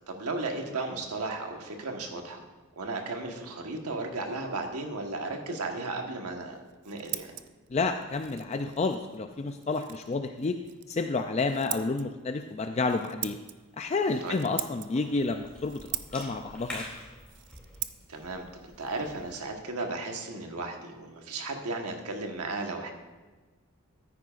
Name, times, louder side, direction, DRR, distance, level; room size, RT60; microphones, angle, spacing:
voice 1, 0.1-2.4 2.8-6.6 6.8-7.4 14.2-14.4 18.1-22.9, right 2 dB, 90° right, 3 dB, 1.3 m, -35 dB
Scissors, 6.5-20.1, right 14 dB, 55° right, 0.4 m, -43 dB
voice 2, 7.7-10.6 10.9-13.4 13.8-16.8, left 3 dB, 30° left, 6 dB, 0.3 m, -30 dB
Cough / Chewing mastication, 13.4-19.4, left 1 dB, 5° left, 2.5 m, -47 dB
14.0 x 9.4 x 2.5 m, 1.3 s
head